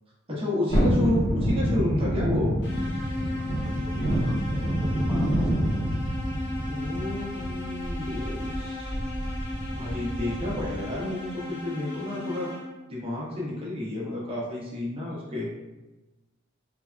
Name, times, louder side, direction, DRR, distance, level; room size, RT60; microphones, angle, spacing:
voice 1, 0.3-2.5 6.7-8.9 9.7-12.5 12.9-15.5, left 1 dB, 30° right, -5 dB, 0.8 m, -31 dB
Thunderstorm, 0.7-10.9 11.3-11.4, equal, 30° left, 0.8 m, -27 dB
sound 1, 2.6-13.0, left 2 dB, 60° left, 0.7 m, -36 dB
voice 2, 3.4-6.0 9.4-9.9, equal, 5° right, -1 dB, 0.3 m, -39 dB
3.3 x 2.1 x 2.4 m, 1.1 s
head